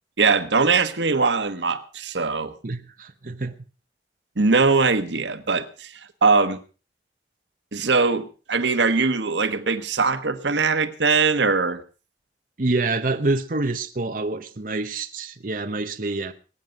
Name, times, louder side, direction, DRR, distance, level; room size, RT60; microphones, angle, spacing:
voice 1, 0.2-2.5 4.4-6.6 7.7-11.8, right 4 dB, 90° right, 1.3 m, -21 dB
voice 2, 2.6-3.5 12.6-16.3, right 2 dB, 50° right, 0.9 m, -26 dB
22.0 x 9.3 x 5.2 m
head